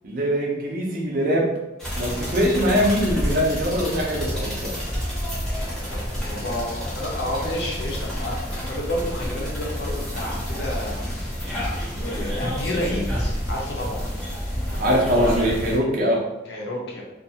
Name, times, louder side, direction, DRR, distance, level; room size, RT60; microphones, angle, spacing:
voice 1, 0.0-1.5 2.0-4.7 14.8-16.3, equal, 50° right, -1 dB, 0.5 m, -22 dB
sound 1, 1.8-15.8, equal, 5° left, 0.6 m, -29 dB
voice 2, 5.5-11.5 12.0-14.0 16.5-17.0, left 1 dB, 60° left, -2 dB, 0.6 m, -31 dB
2.5 x 2.3 x 2.7 m, 0.97 s
head